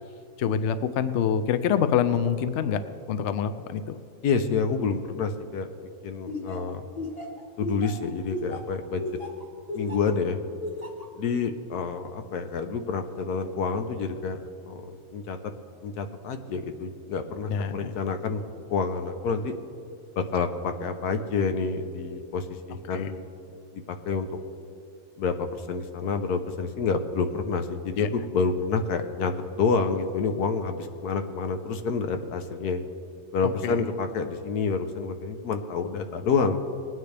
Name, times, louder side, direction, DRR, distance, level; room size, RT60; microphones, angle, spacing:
voice 1, 0.4-4.0 17.5-17.9 22.9-23.1 28.0-28.1 33.6-33.8, left 8 dB, 65° left, 11 dB, 0.7 m, -26 dB
voice 2, 4.2-5.7 6.0-6.8 7.6-9.0 9.7-10.4 11.2-15.4 15.8-18.4 18.7-19.5 20.2-23.2 23.7-24.3 25.2-32.8 33.3-36.6, left 5 dB, 80° left, 7 dB, 1.3 m, -28 dB
Laughter, 6.3-10.1 10.6-11.1, left 2 dB, 25° left, 1.5 m, -34 dB
20.5 x 9.5 x 3.4 m, 2.5 s
omnidirectional pair, 1.7 m